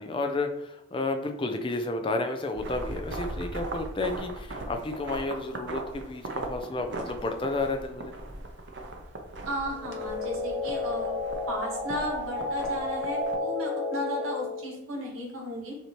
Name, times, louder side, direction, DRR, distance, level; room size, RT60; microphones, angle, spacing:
voice 1, 0.0-8.2, left 2 dB, 25° left, 5 dB, 0.4 m, -31 dB
sound 1, 2.5-13.4, right 2 dB, 55° right, 0.6 m, -39 dB
voice 2, 9.4-11.2 11.5-15.8, equal, 85° right, -2 dB, 1.6 m, -34 dB
sound 2, 9.7-14.7, left 2 dB, 40° right, 1.1 m, -32 dB
6.4 x 2.8 x 3.0 m, 0.88 s
head